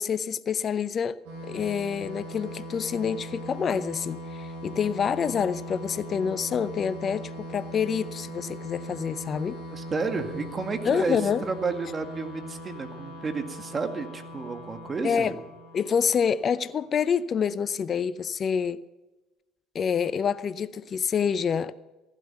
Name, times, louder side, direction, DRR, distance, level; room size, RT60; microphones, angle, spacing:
voice 1, 0.0-9.6 10.8-11.4 15.0-15.3 15.7-18.8 19.7-21.7, left 7 dB, 40° left, 0.6 m, -27 dB
sound 1, 1.3-16.6, equal, 70° right, 6.2 m, -40 dB
voice 2, 9.7-15.4, right 4 dB, 30° right, 1.9 m, -31 dB
15.5 x 11.5 x 5.7 m
supercardioid pair, 80°, 0 cm